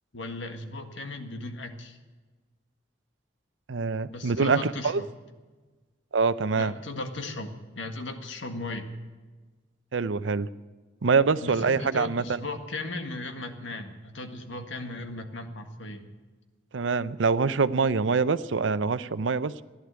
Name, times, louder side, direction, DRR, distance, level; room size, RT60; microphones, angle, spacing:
voice 1, 0.1-2.0 4.1-5.1 6.6-8.9 11.4-16.1, left 2 dB, 85° left, 6 dB, 1.8 m, -37 dB
voice 2, 3.7-5.0 6.1-6.7 9.9-10.5 11.0-12.4 16.7-19.6, right 4 dB, 85° right, 15 dB, 0.6 m, -25 dB
15.0 x 11.0 x 8.2 m, 1.3 s
head